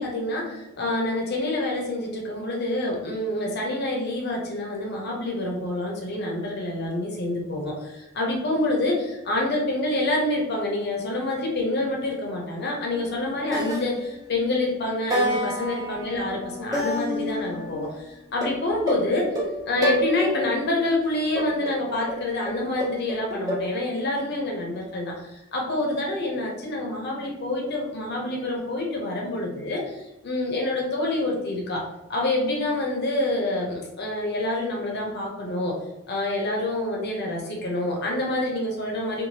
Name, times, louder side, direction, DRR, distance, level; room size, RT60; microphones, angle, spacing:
voice 1, 0.0-19.3 19.7-35.7 36.1-39.3, left 1 dB, 50° left, -1 dB, 0.6 m, -27 dB
sound 1, 12.9-13.2 13.5-14.5 15.1-17.9 18.4-20.6 21.3-23.6, equal, 15° right, 0.6 m, -29 dB
3.1 x 2.3 x 2.7 m, 0.97 s
head